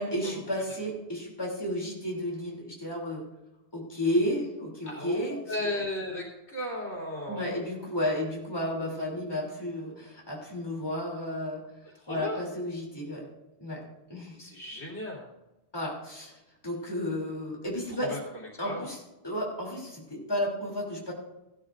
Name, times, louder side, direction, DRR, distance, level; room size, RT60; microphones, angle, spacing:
voice 1, 0.0-3.2 3.7-5.5 7.3-11.6 12.1-13.2 13.6-13.8 14.1-14.4 15.7-16.3 16.6-18.2 18.6-19.0 19.2-21.1, left 1 dB, 20° left, -2 dB, 3.1 m, -32 dB
voice 2, 4.9-5.2 5.5-7.4 12.0-12.4 14.4-15.2 17.9-18.2 18.6-18.9, left 1 dB, 80° left, -4 dB, 3.4 m, -35 dB
17.5 x 11.5 x 2.6 m, 0.97 s
omnidirectional pair, 1.1 m